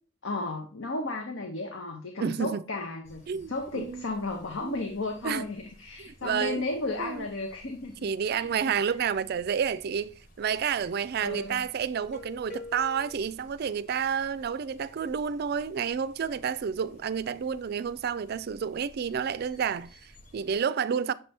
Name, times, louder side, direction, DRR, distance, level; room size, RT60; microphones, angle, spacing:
voice 1, 0.2-7.9 8.3-8.5 11.2-11.6, left 2 dB, 75° left, 0.9 m, -34 dB
voice 2, 2.2-2.6 3.3-4.0 4.6-4.8 5.2-5.5 6.0-6.6 7.0-7.3 8.0-21.1, right 7 dB, 50° right, 0.3 m, -30 dB
sound 1, 3.0-20.6, left 1 dB, 40° left, 1.3 m, -53 dB
6.8 x 3.3 x 4.2 m
head